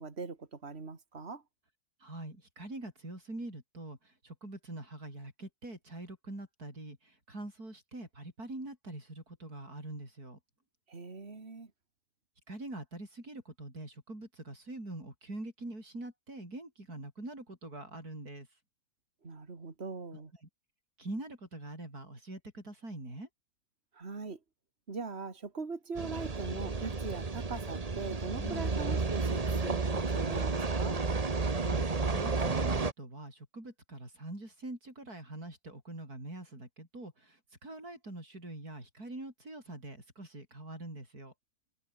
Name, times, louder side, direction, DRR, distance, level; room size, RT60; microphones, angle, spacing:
voice 1, 0.0-1.4 10.9-11.7 19.2-20.3 23.9-24.4 24.9-31.0, right 4 dB, 45° right, 2.8 m, -41 dB
voice 2, 2.0-10.4 12.5-18.5 20.1-20.2 21.0-23.3 28.4-28.7 31.5-41.3, right 2 dB, 85° right, 8.7 m, -44 dB
sound 1, 25.9-32.9, right 4 dB, 25° right, 1.3 m, -32 dB
omnidirectional pair, 1.6 m